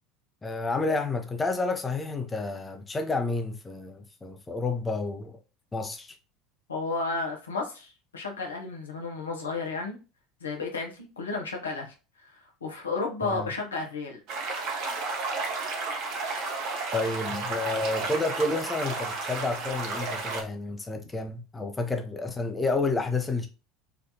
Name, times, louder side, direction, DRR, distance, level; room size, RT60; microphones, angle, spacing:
voice 1, 0.4-5.4 5.7-6.1 13.2-13.5 16.9-23.5, left 3 dB, 20° left, 0.7 m, -30 dB
voice 2, 6.7-10.0 10.4-11.9 12.3-14.2, left 3 dB, 85° left, 0.8 m, -32 dB
sound 1, 14.3-20.4, right 3 dB, 55° right, 1.0 m, -32 dB
4.3 x 2.6 x 2.8 m
hypercardioid pair, 75°, 0 cm